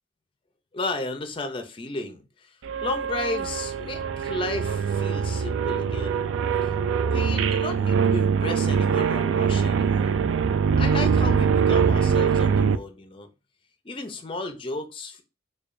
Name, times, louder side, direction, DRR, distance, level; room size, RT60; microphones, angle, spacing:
voice 1, 0.7-6.3 7.0-10.2 10.8-13.3 13.8-15.2, left 2 dB, 25° left, 0.4 m, -34 dB
sound 1, 2.6-12.8, right 6 dB, 75° right, 0.3 m, -23 dB
4.7 x 2.3 x 2.5 m
head